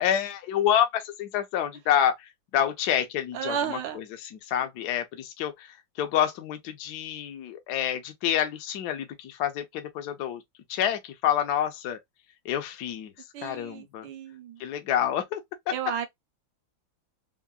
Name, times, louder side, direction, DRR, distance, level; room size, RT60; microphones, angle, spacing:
voice 1, 0.0-2.1 2.5-10.4 10.7-12.0 12.4-13.1 13.4-14.1 14.6-15.4, left 10 dB, 70° left, 1.1 m, -28 dB
voice 2, 3.3-4.0 13.3-14.6 15.7-16.1, right 8 dB, 75° right, 1.1 m, -33 dB
3.6 x 2.0 x 2.2 m
omnidirectional pair, 2.1 m